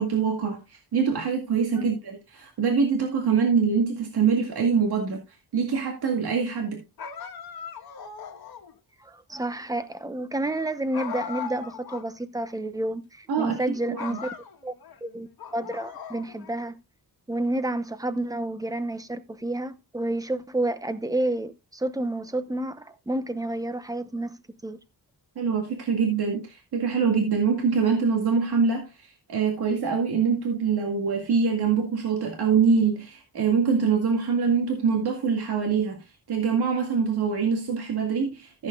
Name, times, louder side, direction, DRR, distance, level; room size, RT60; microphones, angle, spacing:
voice 1, 0.0-5.2 5.5-6.8 13.3-14.2 25.4-36.0 36.3-38.7, right 5 dB, 85° right, 2.1 m, -24 dB
sound 1, 7.0-8.8 10.9-12.1 12.4-12.5 13.4-13.7 14.0-15.0 15.4-16.6, left 6 dB, 70° left, 1.5 m, -38 dB
voice 2, 9.0-14.3 14.6-14.7 15.0-15.3 15.5-16.8 17.3-24.8, right 1 dB, 10° right, 0.8 m, -30 dB
15.0 x 8.0 x 2.4 m
wide cardioid pair, 150°, 38 cm